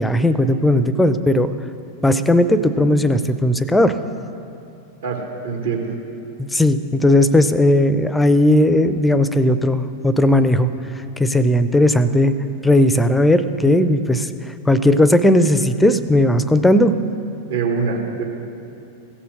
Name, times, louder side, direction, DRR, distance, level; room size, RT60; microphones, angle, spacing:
voice 1, 0.0-1.5 2.0-4.0 6.4-10.7 11.2-12.3 12.6-14.3 14.7-16.9, left 1 dB, 5° left, 12 dB, 0.5 m, -16 dB
voice 2, 5.0-5.9 17.5-18.2, right 5 dB, 60° right, 1 dB, 1.8 m, -24 dB
16.0 x 6.9 x 6.4 m, 2.7 s
figure-of-eight pair, 90°, 0 cm